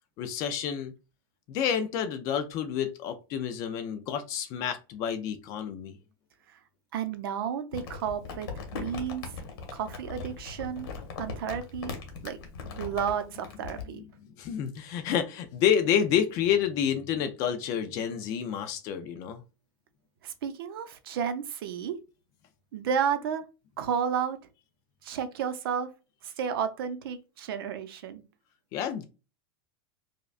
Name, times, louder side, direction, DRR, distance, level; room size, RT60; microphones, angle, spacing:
voice 1, 0.2-0.9 1.5-6.0 14.0-14.1 14.4-19.4 28.7-29.0, left 9 dB, 25° left, 0.3 m, -29 dB
voice 2, 6.9-9.3 9.7-10.9 11.2-11.9 12.2-12.4 12.8-14.0 20.2-22.0 22.7-23.4 23.8-24.4 25.0-25.9 26.2-28.2, right 7 dB, 65° right, 0.6 m, -32 dB
Crumpling crinkling, 7.7-13.8, left 5 dB, 65° left, 1.2 m, -39 dB
4.9 x 2.2 x 2.4 m
supercardioid pair, 180°, 13 cm